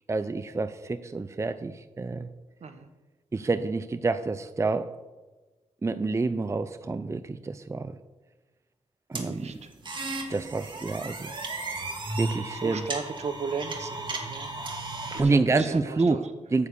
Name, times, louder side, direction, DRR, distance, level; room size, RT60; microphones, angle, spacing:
voice 1, 0.1-2.3 3.3-4.9 5.8-8.0 9.1-9.6 10.3-11.3 12.2-12.9 15.2-16.7, right 3 dB, 25° right, 11 dB, 0.5 m, -28 dB
sound 1, 9.2-15.2, right 2 dB, 40° right, 2.0 m, -35 dB
voice 2, 12.5-14.5 15.1-16.2, right 5 dB, 65° right, 9 dB, 1.2 m, -35 dB
9.4 x 7.0 x 6.9 m, 1.2 s
cardioid pair, 80°, 12 cm